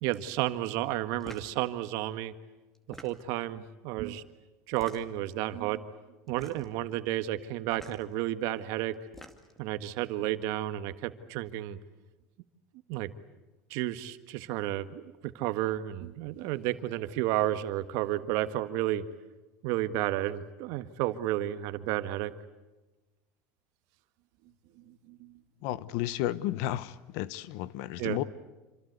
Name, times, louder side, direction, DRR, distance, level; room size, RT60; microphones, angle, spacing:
voice 1, 0.0-2.3 2.9-4.2 4.7-5.8 6.3-8.9 9.6-11.8 12.9-13.1 13.7-19.0 19.6-22.3 24.9-25.3 28.0-28.2, right 14 dB, 65° right, 1.6 m, -32 dB
sound 1, 1.2-1.6 2.7-3.4 4.7-5.3 6.3-6.8 7.7-8.0 8.9-9.6, equal, 5° left, 2.2 m, -48 dB
voice 2, 25.6-28.2, left 14 dB, 70° left, 1.1 m, -32 dB
27.5 x 26.0 x 8.2 m
supercardioid pair, 135°, 6 cm